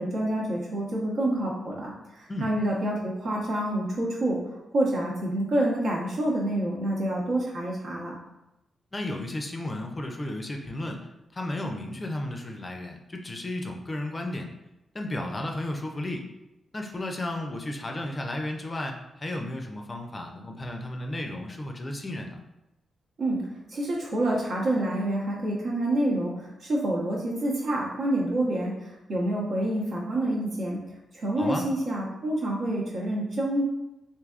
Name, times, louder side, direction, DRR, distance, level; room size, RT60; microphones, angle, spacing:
voice 1, 0.0-4.4 4.7-8.1 23.2-23.4 23.7-30.8 31.1-33.6, right 1 dB, 70° right, -4 dB, 0.9 m, -27 dB
voice 2, 8.9-14.5 14.9-16.3 16.7-22.4 31.4-31.7, left 1 dB, 30° left, 3 dB, 0.4 m, -33 dB
3.4 x 2.6 x 2.4 m, 0.94 s
cardioid pair, 75°, 0 cm